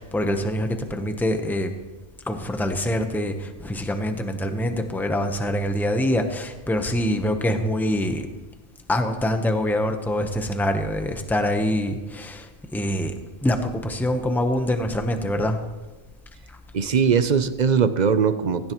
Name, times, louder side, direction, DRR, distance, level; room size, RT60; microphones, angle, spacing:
voice 1, 0.0-1.7 2.2-8.3 8.9-13.2 13.4-15.6, left 1 dB, ahead, 6 dB, 0.8 m, -25 dB
voice 2, 16.7-18.7, right 6 dB, 50° right, 12 dB, 0.6 m, -20 dB
17.0 x 16.0 x 3.1 m, 1.2 s
omnidirectional pair, 1.2 m